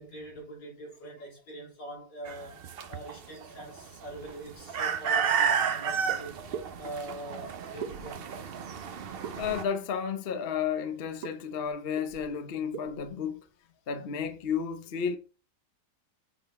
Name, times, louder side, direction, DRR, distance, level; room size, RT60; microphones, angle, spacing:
voice 1, 0.0-2.6 2.9-8.5, right 1 dB, 85° left, 4.3 m, -43 dB
sound 1, 2.3-9.6, right 7 dB, 80° right, 0.5 m, -31 dB
sound 2, 6.1-6.2 6.5-6.7 7.8-8.4 9.2-9.7 11.2-11.3 11.6-11.7 12.0-12.4 12.7-13.1, right 7 dB, 65° right, 1.2 m, -39 dB
voice 2, 9.4-13.5 13.9-15.2, left 7 dB, 45° left, 0.8 m, -32 dB
8.2 x 3.9 x 4.2 m
omnidirectional pair, 1.9 m